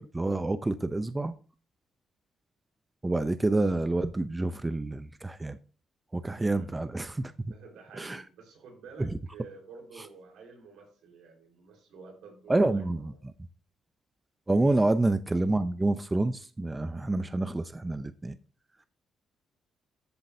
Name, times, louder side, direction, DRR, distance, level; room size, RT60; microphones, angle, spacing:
voice 1, 0.0-1.3 3.0-5.6 6.1-7.3 8.0-8.2 9.0-9.2 12.5-13.1 14.5-18.4, right 2 dB, 15° right, 0.6 m, -28 dB
voice 2, 6.4-6.7 7.5-12.8 13.1-13.2, right 4 dB, 85° right, 4.0 m, -50 dB
14.0 x 7.6 x 2.7 m
cardioid pair, 90°, 0 cm